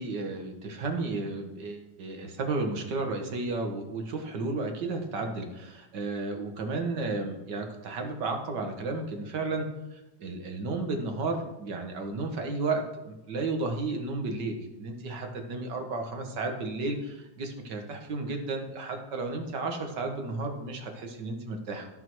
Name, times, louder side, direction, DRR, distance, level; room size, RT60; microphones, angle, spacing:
voice 1, 0.0-9.7 9.9-21.9, right 3 dB, 70° right, 4 dB, 2.0 m, -33 dB
14.0 x 6.2 x 4.7 m, 0.94 s
omnidirectional pair, 2.0 m